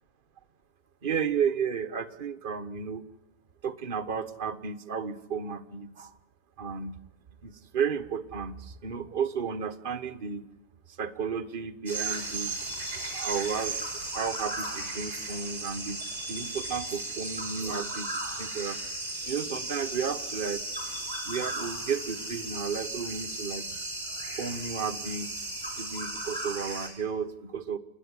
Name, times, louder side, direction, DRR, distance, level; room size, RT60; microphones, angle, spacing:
voice 1, 1.0-3.0 3.6-6.1 6.6-6.9 7.4-10.4 11.0-12.7 13.1-16.0 16.3-18.1 18.4-18.8 19.3-20.6 21.2-23.7 24.4-27.8, right 6 dB, 50° right, 12 dB, 1.4 m, -33 dB
sound 1, 11.9-26.9, right 2 dB, 75° right, 4.7 m, -35 dB
28.5 x 10.0 x 9.9 m, 0.96 s
figure-of-eight pair, 90°, 0 cm